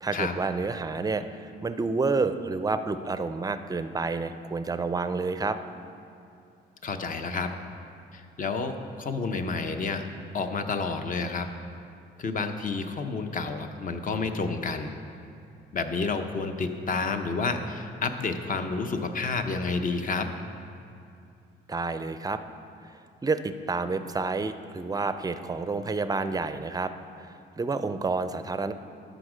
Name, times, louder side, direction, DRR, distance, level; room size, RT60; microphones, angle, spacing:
voice 1, 0.0-5.6 21.7-22.4 23.2-26.9 27.2-27.3 27.6-28.7, right 3 dB, 20° right, 10 dB, 0.4 m, -29 dB
voice 2, 6.8-7.5 8.1-10.1 10.3-11.5 12.2-14.9 15.7-20.3, left 4 dB, 45° left, 7 dB, 0.7 m, -30 dB
12.5 x 5.1 x 5.0 m, 2.6 s
cardioid pair, 90°, 20 cm